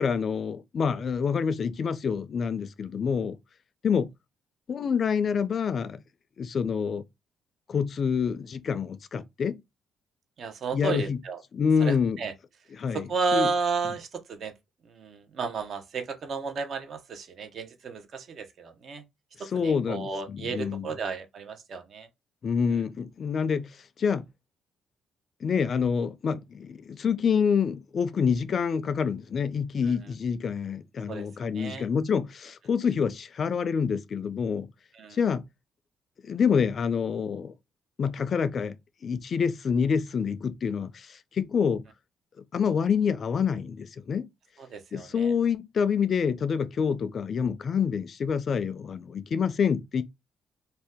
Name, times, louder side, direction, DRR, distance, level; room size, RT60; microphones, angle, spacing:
voice 1, 0.0-3.4 3.8-4.1 4.7-6.0 6.4-7.0 7.7-9.6 10.7-11.2 11.5-12.2 12.8-13.5 19.5-20.9 22.4-24.3 25.4-34.7 35.2-35.4 36.2-37.5 38.0-38.8 39.0-41.8 42.5-44.3 44.9-50.0, left 6 dB, 50° left, 0.4 m, -27 dB
voice 2, 10.4-11.4 11.8-12.3 12.9-14.5 14.8-19.0 19.5-22.1 22.7-22.8 29.9-30.0 31.1-31.9 34.9-35.2 44.6-45.3, right 4 dB, 60° right, 0.7 m, -33 dB
2.7 x 2.2 x 3.5 m
cardioid pair, 90°, 0 cm